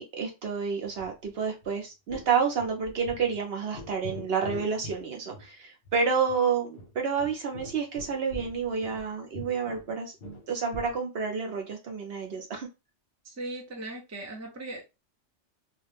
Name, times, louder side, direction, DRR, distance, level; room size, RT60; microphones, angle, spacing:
voice 1, 0.0-10.1 10.5-12.7, right 6 dB, 65° right, 0.8 m, -29 dB
sound 1, 1.0-1.3 1.6-1.7 2.1-2.3 2.6-3.4 3.7-5.0 5.3-5.5 5.9-6.0 6.3-6.4 6.7-9.1 9.3-11.0, left 1 dB, 50° left, 0.8 m, -43 dB
voice 2, 13.2-14.8, right 2 dB, 20° right, 0.5 m, -38 dB
2.4 x 2.1 x 3.2 m
omnidirectional pair, 1.2 m